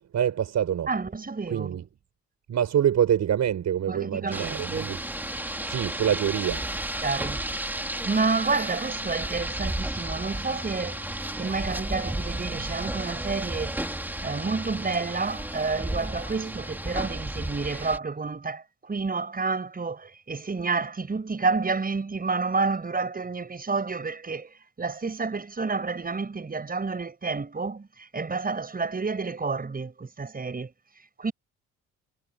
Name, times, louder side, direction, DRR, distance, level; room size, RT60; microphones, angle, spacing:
voice 1, 0.1-0.9 1.5-1.9 2.5-5.0 5.6-6.8, right 9 dB, 65° right, 6.9 m, -25 dB
voice 2, 0.9-1.7 3.9-4.9 7.0-7.5 8.0-11.0 11.4-13.8 14.2-30.7 31.2-31.3, right 4 dB, 30° right, 7.5 m, -29 dB
Rain, 4.3-18.0, right 1 dB, 5° right, 2.6 m, -33 dB
cardioid pair, 90°, 30 cm